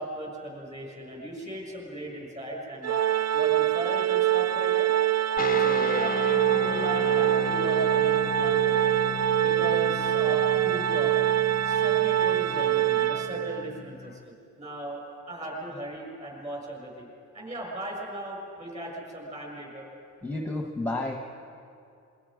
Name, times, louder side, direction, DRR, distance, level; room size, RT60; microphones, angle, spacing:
voice 1, 0.0-3.1 3.3-4.9 5.5-9.0 9.4-11.1 11.6-15.0 15.3-17.1 17.3-19.9, right 1 dB, 25° right, -1 dB, 6.6 m, -37 dB
Organ, 2.8-13.7, right 13 dB, 60° right, 0.5 m, -24 dB
sound 1, 5.4-14.3, left 6 dB, 30° left, 0.6 m, -35 dB
voice 2, 20.2-21.2, left 2 dB, 5° left, 1 dB, 1.3 m, -31 dB
27.0 x 24.0 x 5.2 m, 2.5 s
wide cardioid pair, 155°, 30 cm